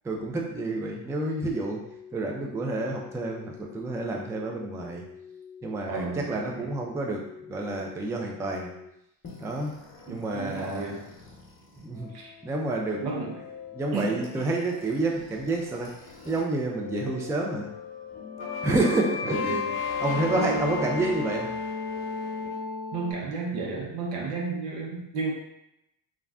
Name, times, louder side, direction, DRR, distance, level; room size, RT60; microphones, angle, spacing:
voice 1, 0.0-1.8 2.1-5.0 5.6-8.7 9.4-9.7 10.1-11.0 11.8-12.1 12.4-13.0 13.7-15.9 16.2-17.7 18.6-19.6 20.0-21.5, right 2 dB, 5° right, 0 dB, 0.3 m, -29 dB
sound 1, 1.4-8.9, left 7 dB, 30° right, 0.9 m, -46 dB
voice 2, 5.9-6.8 10.1-11.1 12.1-12.3 13.0-13.3 13.9-14.3 19.2-19.8 20.3-20.8 22.9-25.3, right 4 dB, 80° right, -2 dB, 0.9 m, -33 dB
sound 2, 9.2-16.4 16.7-23.1, left 5 dB, 25° left, 0.9 m, -36 dB
2.5 x 2.1 x 3.4 m, 0.82 s
supercardioid pair, 70°, 48 cm